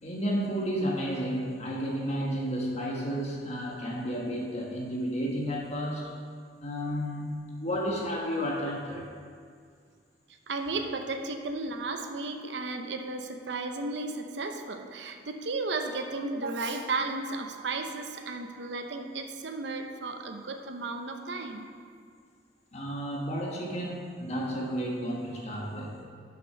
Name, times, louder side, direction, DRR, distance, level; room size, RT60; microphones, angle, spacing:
voice 1, 0.0-6.1 6.6-9.1 22.7-26.0, equal, 35° left, -2 dB, 1.4 m, -32 dB
voice 2, 10.5-21.7, right 3 dB, 80° right, 5 dB, 0.7 m, -34 dB
6.7 x 6.6 x 5.6 m, 2.1 s
head